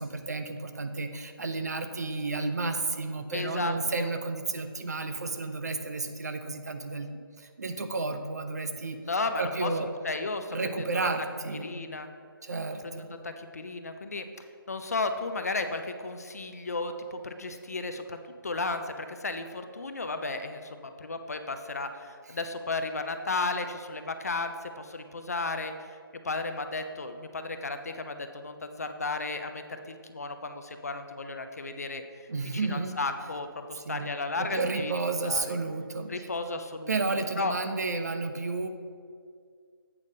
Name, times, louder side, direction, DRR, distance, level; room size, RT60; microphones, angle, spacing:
voice 1, 0.0-7.1 7.4-9.0 9.4-9.9 10.5-11.7 12.4-13.2 32.3-33.0 33.8-34.1 34.4-36.3 36.9-38.7, right 3 dB, 45° right, 7 dB, 0.5 m, -32 dB
voice 2, 3.3-4.1 9.1-9.7 10.0-11.1 11.6-12.1 12.8-18.2 18.4-26.0 26.2-32.3 32.5-34.9 35.2-35.5 36.1-37.0 37.4-37.6, left 3 dB, 40° left, 8 dB, 0.4 m, -34 dB
8.2 x 3.5 x 6.5 m, 2.2 s
figure-of-eight pair, 170°, 13 cm